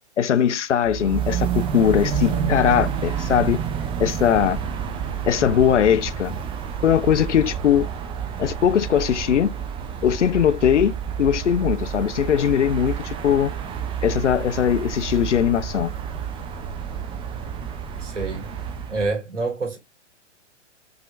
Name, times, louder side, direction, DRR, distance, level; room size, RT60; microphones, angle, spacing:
voice 1, 0.2-3.6 4.0-4.6 5.3-6.3 6.8-7.9 8.4-9.5 10.0-13.5 14.0-15.9, left 9 dB, 75° left, 0.7 m, -20 dB
sound 1, 0.8-19.1, right 7 dB, 15° right, 0.7 m, -29 dB
voice 2, 18.0-18.5 18.9-19.8, right 3 dB, 80° right, 2.6 m, -27 dB
6.0 x 3.4 x 2.6 m
figure-of-eight pair, 120°, 36 cm